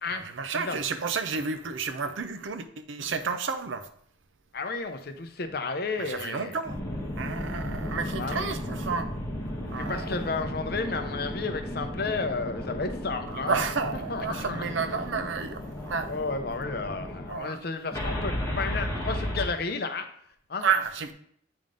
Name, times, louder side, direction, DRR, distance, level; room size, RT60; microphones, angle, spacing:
voice 1, 0.1-3.9 6.0-6.8 7.2-9.1 9.7-10.1 13.3-16.2 17.3-17.6 20.6-21.1, right 5 dB, 75° right, 0.6 m, -31 dB
voice 2, 4.5-6.6 8.2-8.6 9.8-13.5 13.9-14.7 16.1-20.1 20.5-20.6, left 4 dB, 50° left, 0.6 m, -32 dB
sound 1, 6.6-17.3 17.9-19.5, equal, 15° left, 1.4 m, -34 dB
8.7 x 3.6 x 3.7 m
head